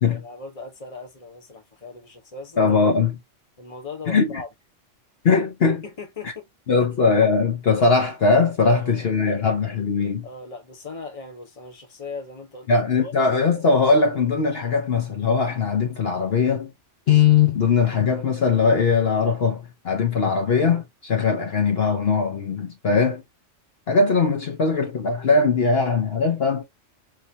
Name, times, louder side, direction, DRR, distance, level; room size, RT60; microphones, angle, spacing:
voice 1, 0.0-2.6 3.6-4.5 5.8-6.5 6.8-7.0 8.6-9.5 10.2-12.7 13.0-13.1, left 3 dB, 30° left, 1.1 m, -38 dB
voice 2, 2.6-3.2 4.1-4.4 5.2-5.8 6.2-6.3 6.7-10.3 12.7-16.7 17.1-23.2 23.9-26.6, left 5 dB, 55° left, 1.1 m, -20 dB
4.9 x 2.8 x 2.8 m
omnidirectional pair, 1.3 m